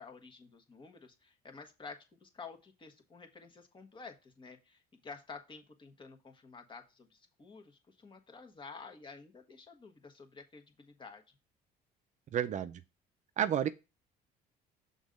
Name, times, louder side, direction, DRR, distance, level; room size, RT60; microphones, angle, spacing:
voice 1, 0.0-11.2, left 4 dB, 30° left, 1.4 m, -51 dB
voice 2, 12.3-12.8 13.4-13.7, right 9 dB, 45° right, 0.5 m, -30 dB
6.2 x 3.9 x 5.1 m
cardioid pair, 110°, 17 cm